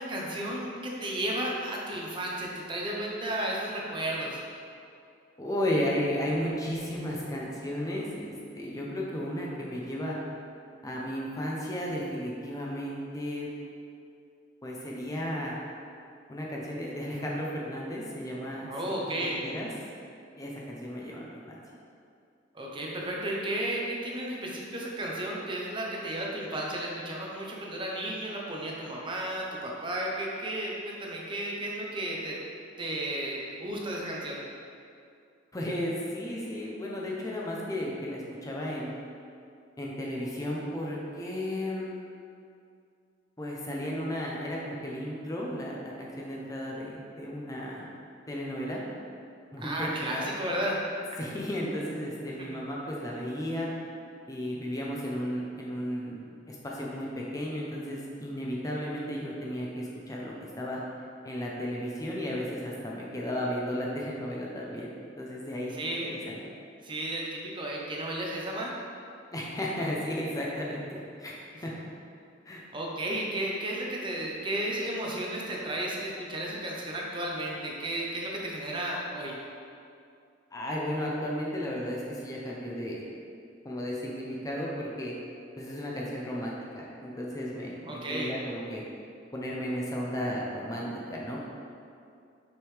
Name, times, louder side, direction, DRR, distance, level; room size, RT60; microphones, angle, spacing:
voice 1, 0.0-4.4 18.7-19.4 22.5-32.4 32.8-34.4 49.6-50.8 52.5-52.6 65.7-66.1 66.8-68.7 72.7-79.4 87.9-88.4, right 1 dB, 25° right, -2 dB, 0.7 m, -33 dB
voice 2, 5.4-10.2 10.8-13.5 14.6-15.5 16.3-18.7 19.4-19.7 20.4-21.6 35.5-38.9 39.8-41.8 43.4-47.9 48.3-48.8 49.5-50.3 51.2-53.7 54.3-56.2 56.5-60.8 61.2-64.9 65.2-65.7 66.0-66.4 69.3-71.8 72.5-72.6 80.5-83.1 83.6-85.1 85.6-88.8 89.3-91.4, equal, 20° left, -4 dB, 0.6 m, -34 dB
6.0 x 5.3 x 3.2 m, 2.4 s
head